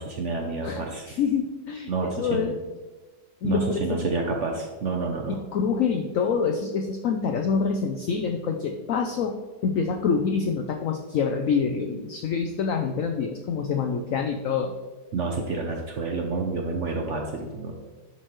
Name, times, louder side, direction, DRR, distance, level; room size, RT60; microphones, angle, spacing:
voice 1, 0.0-1.1 1.9-2.5 3.4-5.4 15.1-17.7, right 3 dB, 60° right, 1 dB, 0.8 m, -29 dB
voice 2, 0.6-2.5 3.4-4.0 5.3-9.3 9.6-14.7, left 5 dB, 75° left, 4 dB, 0.7 m, -26 dB
11.0 x 4.3 x 3.1 m, 1.2 s
omnidirectional pair, 1.9 m